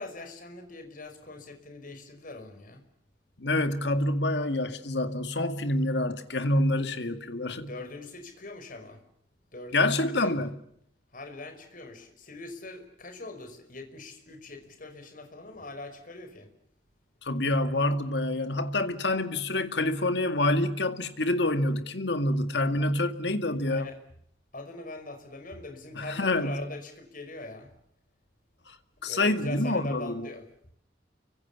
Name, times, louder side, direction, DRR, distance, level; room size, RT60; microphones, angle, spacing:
voice 1, 0.0-2.8 7.5-9.0 9.5-10.3 11.1-16.5 23.7-24.0 24.5-27.7 29.0-30.4, left 2 dB, 50° left, 5.2 m, -42 dB
voice 2, 3.4-7.7 9.7-10.5 17.2-23.9 25.9-26.7 28.7-28.8 29.0-30.3, left 1 dB, 70° left, 2.1 m, -27 dB
30.0 x 25.0 x 7.2 m
head